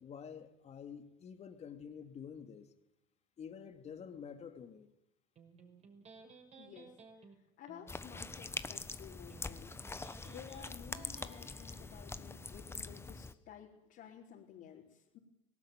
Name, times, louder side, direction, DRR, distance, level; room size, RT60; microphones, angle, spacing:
voice 1, 0.0-2.7 3.4-4.9, left 7 dB, 35° left, 7 dB, 2.7 m, -48 dB
Electric guitar, 5.4-12.3, right 4 dB, 35° right, 5.9 m, -59 dB
voice 2, 6.6-6.9 7.6-9.7 10.2-15.2, left 9 dB, 55° left, -4 dB, 4.6 m, -53 dB
sound 1, 7.9-13.3, left 3 dB, 15° left, 1.3 m, -44 dB
19.0 x 18.5 x 9.0 m, 0.85 s
hypercardioid pair, 85°, 18 cm